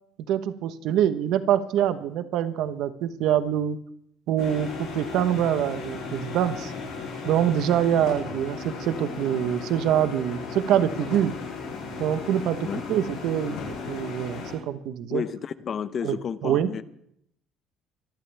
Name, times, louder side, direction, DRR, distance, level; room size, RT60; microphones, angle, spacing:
voice 1, 0.3-3.8 4.3-6.7 7.2-11.3 12.0-13.6 13.9-15.2 16.0-16.2 16.4-16.8, right 10 dB, 75° right, 11 dB, 1.1 m, -25 dB
sound 1, 4.4-14.5, left 4 dB, 80° left, 6.9 m, -36 dB
voice 2, 15.1-16.8, left 7 dB, 45° left, 15 dB, 0.8 m, -31 dB
24.5 x 14.0 x 3.5 m, 0.71 s
cardioid pair, 105°, 0 cm